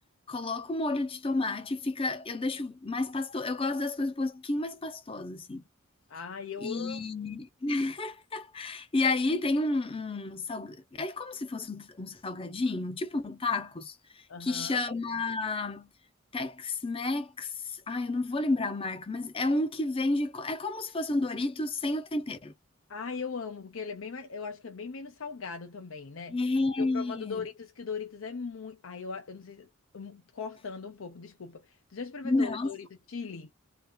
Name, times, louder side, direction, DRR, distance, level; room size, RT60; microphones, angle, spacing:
voice 1, 0.3-5.6 6.6-15.9 16.3-22.5 26.3-27.5 32.2-32.7, left 2 dB, 25° left, 0.6 m, -31 dB
voice 2, 6.1-7.0 14.3-14.8 22.9-26.4 26.8-29.7 29.9-33.5, left 5 dB, 75° left, 0.6 m, -39 dB
2.8 x 2.4 x 3.7 m
head